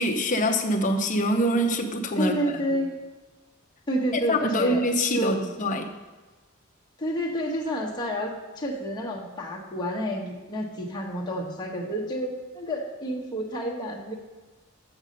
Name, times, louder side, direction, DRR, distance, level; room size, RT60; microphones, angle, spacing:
voice 1, 0.0-2.4 4.3-5.9, equal, 35° left, 3 dB, 0.8 m, -24 dB
voice 2, 2.2-2.9 3.9-4.8 5.1-5.4 7.0-14.1, equal, 20° left, -2 dB, 1.2 m, -29 dB
7.2 x 6.5 x 5.2 m, 1.3 s
head